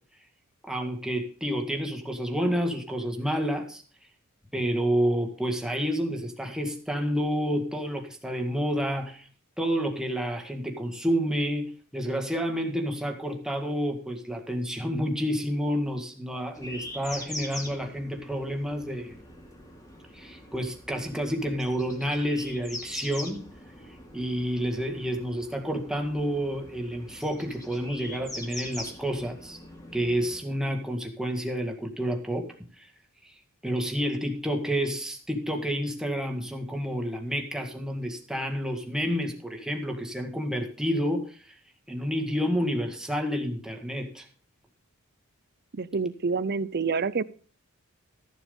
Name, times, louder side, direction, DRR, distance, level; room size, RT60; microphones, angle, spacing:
voice 1, 0.6-3.8 4.5-9.3 9.6-19.2 20.1-23.5 24.1-29.6 29.9-32.5 32.8-32.9 33.2-33.3 33.6-41.6 41.9-44.3, equal, 5° right, 3 dB, 1.9 m, -29 dB
sound 1, 16.5-30.4, left 1 dB, 15° left, 2.5 m, -43 dB
voice 2, 45.8-47.2, right 4 dB, 50° right, 17 dB, 0.6 m, -27 dB
14.0 x 7.1 x 5.4 m, 0.40 s
head